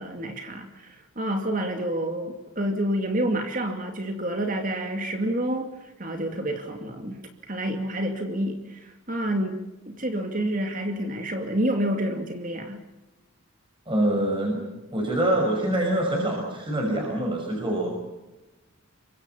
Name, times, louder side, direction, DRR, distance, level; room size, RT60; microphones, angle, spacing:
voice 1, 0.0-7.2 7.5-9.6 9.9-12.8, right 1 dB, 40° right, 4 dB, 2.5 m, -28 dB
voice 2, 13.9-14.6 14.9-17.9, right 1 dB, 25° right, 0 dB, 5.9 m, -25 dB
28.5 x 24.0 x 5.7 m, 1.0 s
head